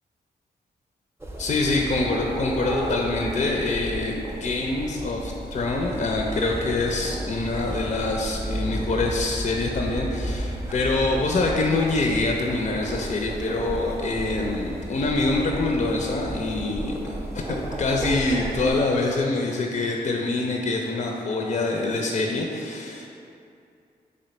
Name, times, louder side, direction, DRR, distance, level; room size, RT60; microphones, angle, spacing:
sound 1, 1.2-18.7, right 1 dB, 15° right, 0.5 m, -33 dB
voice 1, 1.4-23.1, left 2 dB, 40° left, 1 dB, 0.4 m, -25 dB
3.2 x 2.6 x 4.0 m, 2.5 s
cardioid pair, 50°, 18 cm